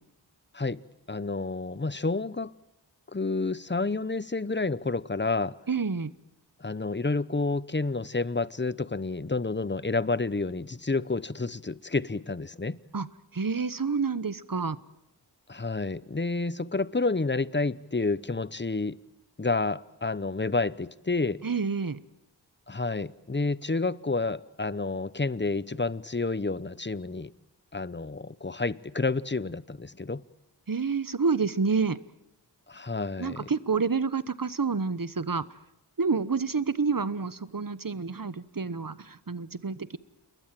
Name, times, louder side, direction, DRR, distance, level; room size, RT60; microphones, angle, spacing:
voice 1, 1.1-2.5 3.1-5.5 6.6-12.8 15.5-19.0 19.4-21.4 22.7-27.3 27.7-30.2 32.7-33.5, left 3 dB, 25° left, 18 dB, 0.9 m, -29 dB
voice 2, 5.7-6.1 12.9-13.1 13.3-14.8 21.4-22.0 30.7-32.0 33.2-35.4 36.0-40.0, right 5 dB, 50° right, 16 dB, 1.2 m, -28 dB
29.0 x 21.5 x 7.7 m, 0.87 s
wide cardioid pair, 50°, 43 cm